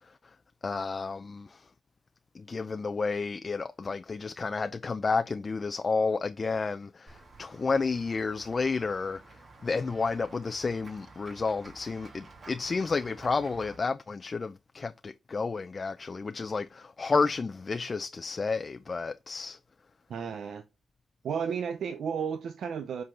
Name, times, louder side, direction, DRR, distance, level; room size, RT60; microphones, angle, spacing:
voice 1, 0.6-1.6 2.3-9.2 9.6-19.6, left 4 dB, 45° left, 0.5 m, -31 dB
Run / Walk footsteps / Bell, 7.1-13.8, right 3 dB, 55° right, 2.7 m, -52 dB
voice 2, 20.1-20.6 21.2-23.0, right 7 dB, 80° right, 0.6 m, -33 dB
7.5 x 4.0 x 4.3 m
cardioid pair, 65°, 0 cm